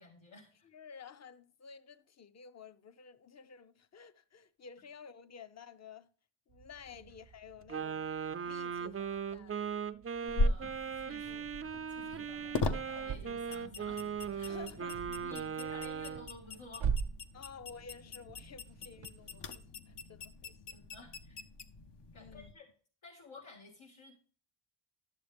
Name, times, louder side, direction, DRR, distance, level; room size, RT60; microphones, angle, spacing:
voice 1, 0.0-0.7 6.9-7.1 10.2-11.5 11.9-14.1 14.4-16.9 20.7-21.4 22.1-22.7 23.0-24.1, left 2 dB, 85° left, 2.1 m, -53 dB
voice 2, 0.6-6.1 6.5-8.1 8.4-9.7 11.3-11.4 12.1-12.3 14.5-15.0 17.3-20.8 22.1-22.5, left 6 dB, 35° left, 0.6 m, -53 dB
sound 1, 6.5-20.1, right 6 dB, 85° right, 0.8 m, -45 dB
Wind instrument woodwind instrument, 7.7-16.3, right 7 dB, 30° right, 0.4 m, -39 dB
sound 2, 10.3-22.5, left 2 dB, 60° left, 0.9 m, -39 dB
12.5 x 7.1 x 3.4 m
wide cardioid pair, 100°, 46 cm